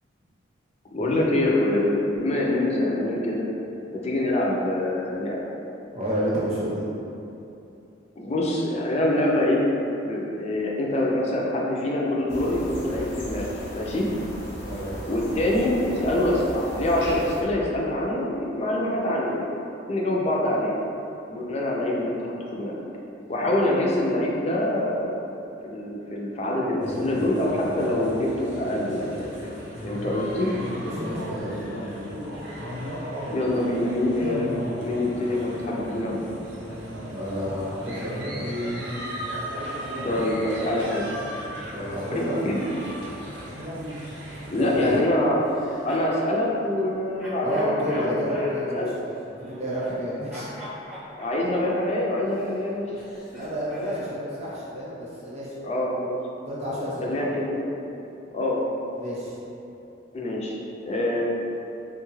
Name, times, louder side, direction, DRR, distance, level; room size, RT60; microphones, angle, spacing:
voice 1, 0.9-3.5 3.9-5.5 8.2-9.6 10.0-14.1 15.1-19.5 19.9-20.8 21.3-22.7 23.3-25.3 25.6-29.3 29.8-30.5 33.3-36.2 40.0-41.1 42.1-42.6 44.5-45.4 45.8-48.9 51.2-52.9 55.6-56.2 57.0-57.6 58.3-58.6 60.1-60.6 60.8-61.2, left 1 dB, 35° left, -3 dB, 0.4 m, -25 dB
voice 2, 5.9-6.8 14.7-14.9 30.8-31.7 37.1-38.7 41.7-42.4 44.5-45.0 47.4-50.5 53.3-55.5 56.5-57.3 59.0-59.4, equal, 35° right, -7 dB, 0.7 m, -30 dB
sound 1, 12.3-17.4, equal, 75° left, 0.7 m, -36 dB
sound 2, 26.8-45.0, equal, 70° right, 0.7 m, -35 dB
sound 3, 45.4-46.3 47.2-50.0 50.3-54.2, equal, ahead, 0.7 m, -42 dB
3.4 x 2.3 x 3.1 m, 2.9 s
head